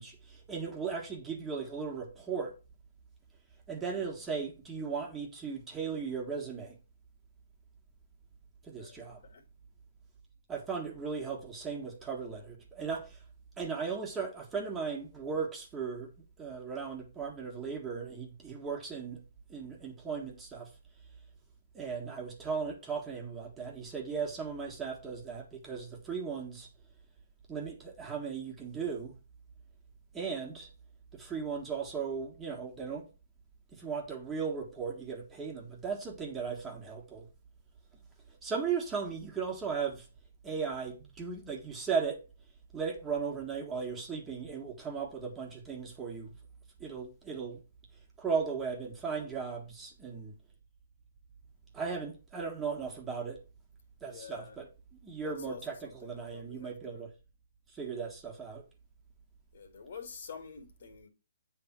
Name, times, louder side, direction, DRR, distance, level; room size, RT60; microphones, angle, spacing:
voice 1, 0.0-2.5 3.7-6.8 8.6-9.2 10.5-13.2 13.6-19.2 19.5-20.7 21.7-26.7 27.5-29.2 30.1-30.7 31.1-33.1 33.7-37.3 38.4-40.1 40.4-42.2 42.7-46.3 46.8-47.6 48.2-50.4 51.7-53.4 54.0-54.7 55.0-57.1 57.7-58.6, right 5 dB, 10° right, 1.8 m, -37 dB
voice 2, 8.8-9.4 49.1-49.5 54.1-54.6 55.2-57.0 59.5-61.1, left 6 dB, 60° left, 2.2 m, -48 dB
8.5 x 3.6 x 5.9 m
hypercardioid pair, 145°, 0 cm